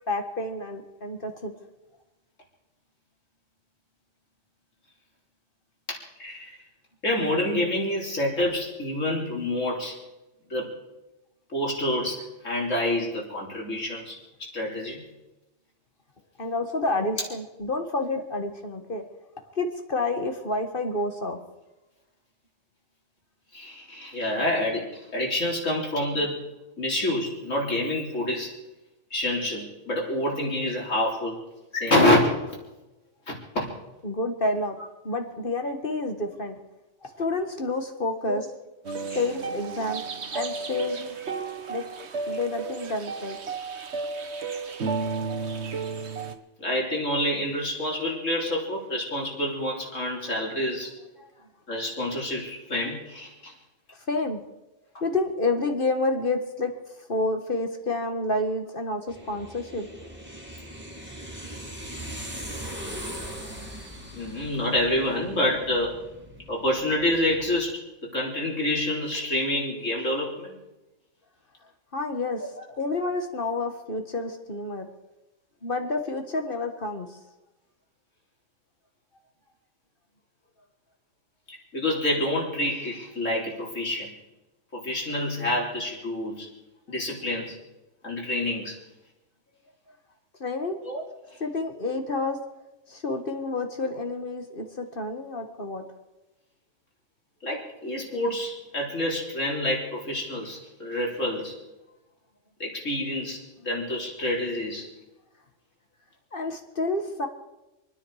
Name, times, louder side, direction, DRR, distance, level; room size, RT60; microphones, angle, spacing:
voice 1, 0.1-1.5 16.4-19.1 19.6-21.4 34.0-34.8 35.0-36.6 37.0-38.4 39.2-40.0 40.3-41.2 41.7-41.9 42.3-43.4 51.2-51.3 54.1-54.4 55.0-56.7 57.1-59.9 71.9-72.5 72.8-74.9 75.6-77.2 90.4-90.8 91.4-92.4 92.9-95.9 106.3-107.3, left 2 dB, 45° left, 5 dB, 1.8 m, -29 dB
voice 2, 5.9-6.6 7.0-10.0 10.5-10.7 11.5-15.0 23.5-26.5 26.8-28.5 29.1-31.4 31.7-32.4 33.3-33.7 38.3-38.4 39.1-39.2 46.6-50.9 51.7-53.5 64.1-66.0 66.5-70.6 81.5-84.1 84.7-86.5 86.9-87.6 88.0-88.8 90.8-91.0 97.4-101.6 102.6-104.9, left 1 dB, 80° left, -2 dB, 4.2 m, -27 dB
sound 1, 38.8-46.3, right 4 dB, 60° right, 1.4 m, -33 dB
sound 2, 59.1-67.6, equal, 10° right, 2.5 m, -40 dB
28.5 x 10.0 x 4.9 m, 1.0 s
omnidirectional pair, 1.3 m